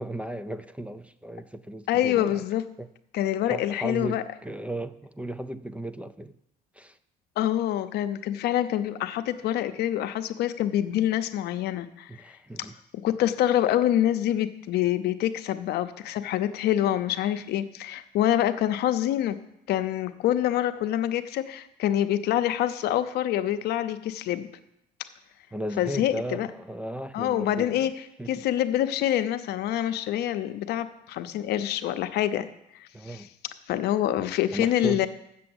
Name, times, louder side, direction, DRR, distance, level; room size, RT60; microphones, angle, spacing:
voice 1, 0.0-2.4 2.8-2.9 3.5-6.3 6.7-7.0 12.1-12.8 25.5-27.9 28.2-28.4 32.9-33.3 34.5-35.1, right 1 dB, 5° right, 12 dB, 0.4 m, -35 dB
voice 2, 1.9-2.7 3.1-4.2 7.4-12.1 12.6-12.7 13.0-19.4 19.7-24.5 25.8-26.5 27.1-27.9 28.3-32.5 32.7-33.2 33.7-35.1, left 12 dB, 75° left, 10 dB, 0.7 m, -26 dB
7.5 x 6.9 x 7.9 m, 0.80 s
cardioid pair, 110°, 17 cm